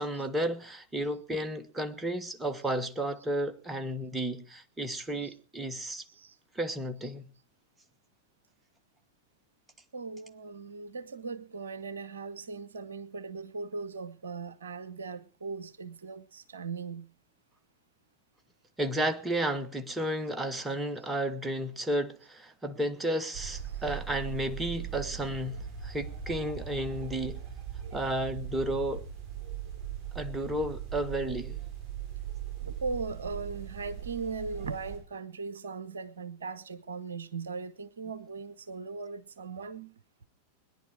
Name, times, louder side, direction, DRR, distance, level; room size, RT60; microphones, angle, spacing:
voice 1, 0.0-6.0 6.5-7.3 18.8-27.4 27.9-29.0 30.1-31.6, right 1 dB, 10° right, 1.5 m, -32 dB
voice 2, 9.9-17.1 23.7-23.8 32.6-39.9, right 4 dB, 70° right, 0.7 m, -39 dB
sound 1, 23.3-35.0, right 9 dB, 30° right, 7.6 m, -39 dB
21.5 x 10.5 x 4.9 m
figure-of-eight pair, 90°, 0 cm